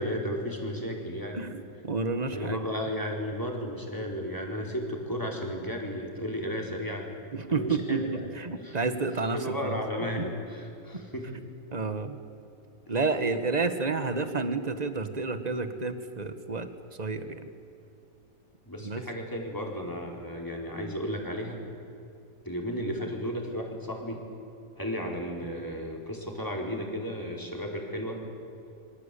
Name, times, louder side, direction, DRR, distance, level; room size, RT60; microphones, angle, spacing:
voice 1, 0.0-1.4 2.3-7.1 7.5-8.4 8.6-8.8 9.3-11.3 18.7-21.6 22.4-24.2 24.8-28.2, equal, 10° left, 0 dB, 4.4 m, -34 dB
voice 2, 1.3-2.7 7.3-8.0 8.3-9.8 10.2-10.3 11.7-12.2 12.9-16.7 17.0-17.5 18.8-19.0, right 4 dB, 25° right, 9 dB, 1.5 m, -30 dB
27.5 x 24.5 x 8.5 m, 2.7 s
omnidirectional pair, 2.0 m